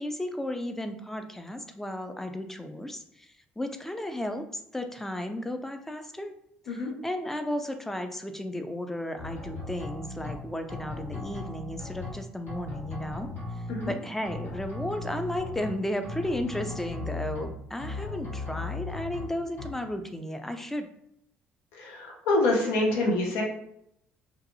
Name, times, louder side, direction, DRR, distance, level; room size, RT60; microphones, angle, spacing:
voice 1, 0.0-6.3 6.7-13.3 13.6-20.9, left 1 dB, 10° left, 7 dB, 0.3 m, -34 dB
sound 1, 9.2-10.3 10.7-12.1 12.5-13.9 14.2-15.7 16.0-17.5 17.8-19.2 19.6-19.7, left 2 dB, 60° left, 1.1 m, -37 dB
voice 2, 21.7-23.4, left 2 dB, 85° left, 0 dB, 0.6 m, -26 dB
2.6 x 2.3 x 2.6 m, 0.75 s
supercardioid pair, 80°, 4 cm